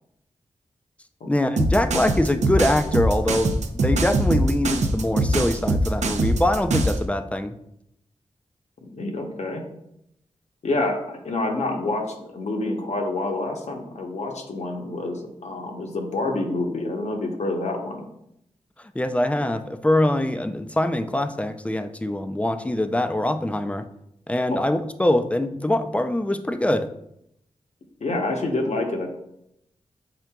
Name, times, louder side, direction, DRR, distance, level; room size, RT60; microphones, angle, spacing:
voice 1, 1.3-7.5 18.9-23.8 24.3-26.9, left 1 dB, 10° left, 9 dB, 0.4 m, -23 dB
sound 1, 1.6-7.0, right 2 dB, 70° right, 0.5 m, -22 dB
voice 2, 8.8-9.6 10.6-18.1 24.5-24.6 28.0-29.1, left 2 dB, 70° left, 2 dB, 0.8 m, -27 dB
5.8 x 3.8 x 2.3 m, 0.78 s
cardioid pair, 55°, 12 cm